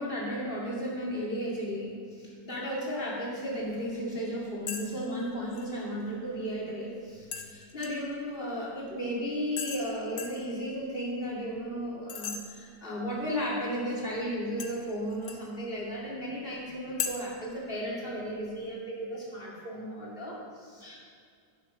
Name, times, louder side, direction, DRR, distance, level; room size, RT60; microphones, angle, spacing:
voice 1, 0.0-21.0, equal, 30° left, -5 dB, 2.8 m, -34 dB
sound 1, 4.7-4.9 5.1-5.7 7.3-8.1 9.6-9.9 10.2-10.4 12.1-12.4 14.6-15.5 17.0-17.1, left 7 dB, 70° left, 1.3 m, -36 dB
11.0 x 7.3 x 5.6 m, 2.2 s
omnidirectional pair, 1.9 m